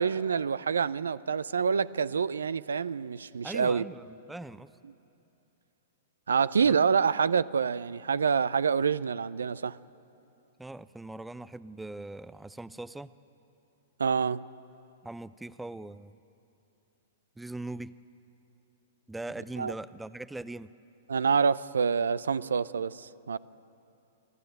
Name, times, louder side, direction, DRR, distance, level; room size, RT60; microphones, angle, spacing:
voice 1, 0.0-3.8 6.3-9.8 14.0-14.4 19.6-19.7 21.1-23.4, right 6 dB, 80° right, 0.4 m, -27 dB
voice 2, 3.4-4.7 6.6-6.8 10.6-13.1 15.0-16.2 17.4-17.9 19.1-20.7, right 2 dB, 5° right, 0.5 m, -41 dB
27.0 x 12.5 x 9.1 m
hypercardioid pair, 110°, 0 cm